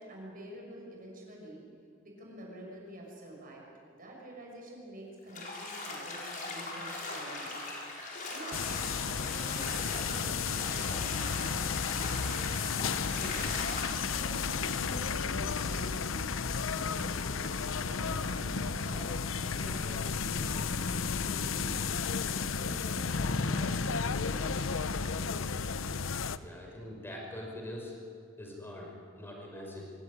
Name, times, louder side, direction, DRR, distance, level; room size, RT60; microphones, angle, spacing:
voice 1, 0.0-1.6 2.0-3.6 4.0-7.6 8.3-16.3 16.6-17.5 17.8-21.8 22.3-24.7, right 1 dB, 45° right, -2 dB, 6.4 m, -48 dB
Bathtub (filling or washing), 5.3-14.1, left 2 dB, 45° left, 5.0 m, -40 dB
sound 1, 8.5-26.4, left 5 dB, 80° left, 0.8 m, -33 dB
voice 2, 26.3-27.9 28.4-29.9, left 1 dB, 10° left, -1 dB, 5.5 m, -43 dB
25.0 x 16.5 x 9.8 m, 2.3 s
head